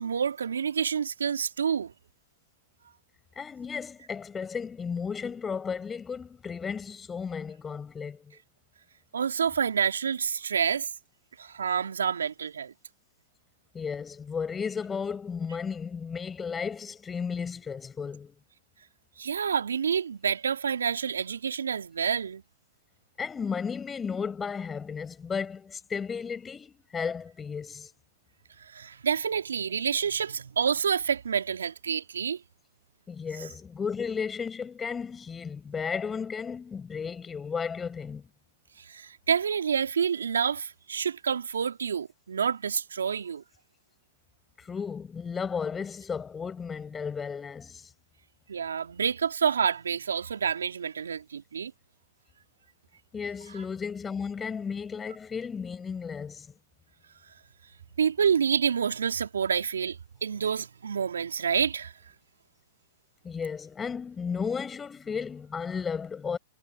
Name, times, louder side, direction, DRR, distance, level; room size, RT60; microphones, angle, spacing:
voice 1, 0.0-1.9 9.1-10.9 11.4-12.7 19.2-22.4 28.6-32.4 38.8-43.4 48.5-51.7 58.0-61.9, right 7 dB, 80° right, 2.8 m, -28 dB
voice 2, 3.4-8.4 13.7-18.3 23.2-27.9 33.1-38.3 44.6-47.9 53.1-56.5 63.2-66.4, left 6 dB, 20° left, 6.1 m, -34 dB
hypercardioid pair, 105°, 0 cm